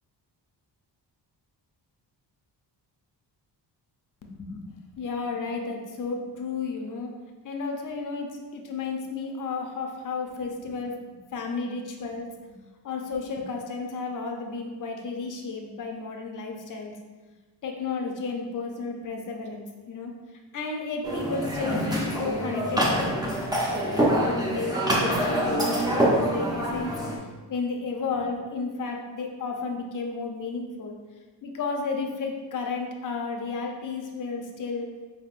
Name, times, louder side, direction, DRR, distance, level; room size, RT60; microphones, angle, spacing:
voice 1, 4.3-7.1 7.4-12.5 12.8-17.0 17.6-20.1 20.5-26.9 27.5-31.0 31.4-34.9, left 4 dB, 45° left, 2 dB, 0.6 m, -33 dB
sound 1, 21.0-27.2, right 1 dB, 10° right, 0.5 m, -25 dB
4.7 x 3.6 x 2.4 m, 1.3 s
wide cardioid pair, 150°, 43 cm